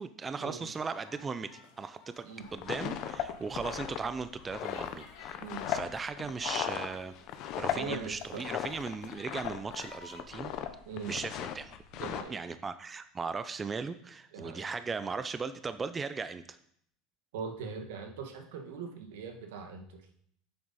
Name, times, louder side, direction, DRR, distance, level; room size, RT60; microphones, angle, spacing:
voice 1, 0.0-1.5 1.8-2.2 2.5-5.4 5.7-7.1 7.6-10.5 11.1-11.7 12.3-16.6, right 4 dB, 20° right, 11 dB, 0.4 m, -37 dB
sound 1, 0.7-10.2, left 5 dB, 75° left, 1.8 m, -55 dB
sound 2, 2.4-9.9 10.1-10.7 11.0-12.2, left 10 dB, 55° left, 0.9 m, -36 dB
voice 2, 7.7-8.5 10.9-11.1 11.9-12.4 14.3-14.7 17.3-20.0, right 5 dB, 90° right, 5 dB, 1.3 m, -41 dB
7.7 x 7.3 x 4.1 m, 0.67 s
supercardioid pair, 130°, 0 cm